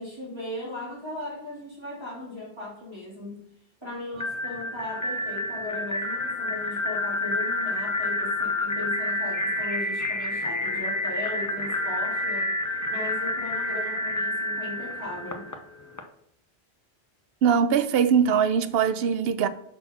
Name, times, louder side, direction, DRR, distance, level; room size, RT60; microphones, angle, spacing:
voice 1, 0.0-3.4 3.8-12.5 12.9-15.5, left 2 dB, 25° right, 2.9 m, -37 dB
sound 1, 4.2-16.0, left 1 dB, 20° left, 0.6 m, -29 dB
voice 2, 17.4-19.5, right 7 dB, 70° right, 0.8 m, -21 dB
5.7 x 4.2 x 5.5 m
omnidirectional pair, 1.0 m